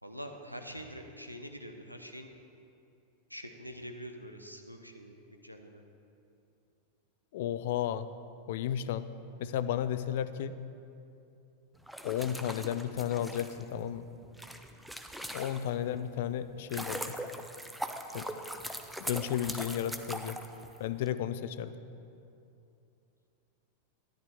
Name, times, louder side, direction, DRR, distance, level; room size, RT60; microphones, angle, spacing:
voice 1, 0.0-2.3 3.3-5.8, equal, 90° right, 5 dB, 0.8 m, -45 dB
voice 2, 7.3-8.1 8.5-9.1 9.4-10.6 12.0-14.1 15.3-17.1 18.1-18.3 19.0-20.4 20.8-21.7, left 10 dB, 55° left, 13 dB, 0.4 m, -33 dB
sound 1, 11.8-15.9 16.4-21.1, right 1 dB, ahead, 0.6 m, -41 dB
13.5 x 10.5 x 3.5 m, 2.7 s
figure-of-eight pair, 90°, 0 cm